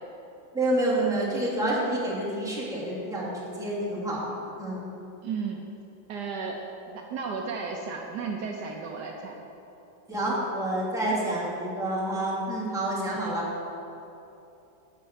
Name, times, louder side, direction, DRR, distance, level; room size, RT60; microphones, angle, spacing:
voice 1, 0.5-4.8 10.1-13.5, right 1 dB, ahead, -8 dB, 2.6 m, -28 dB
voice 2, 5.2-5.6 6.1-9.4 13.2-13.4, right 5 dB, 70° right, 1 dB, 1.3 m, -34 dB
11.0 x 5.4 x 8.1 m, 2.9 s
omnidirectional pair, 2.0 m